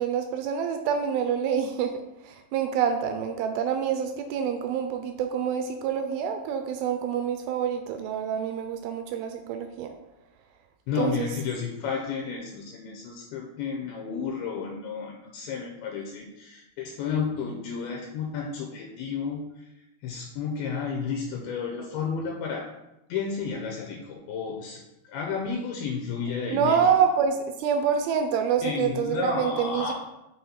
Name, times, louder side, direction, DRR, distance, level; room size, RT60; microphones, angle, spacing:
voice 1, 0.0-9.9 11.0-11.3 26.5-29.9, right 7 dB, 80° right, 6 dB, 2.2 m, -27 dB
voice 2, 10.9-19.4 20.0-22.6 23.1-24.8 25.1-26.8 28.6-29.9, left 5 dB, 80° left, 0 dB, 2.5 m, -32 dB
6.2 x 3.9 x 4.3 m, 0.91 s
omnidirectional pair, 4.6 m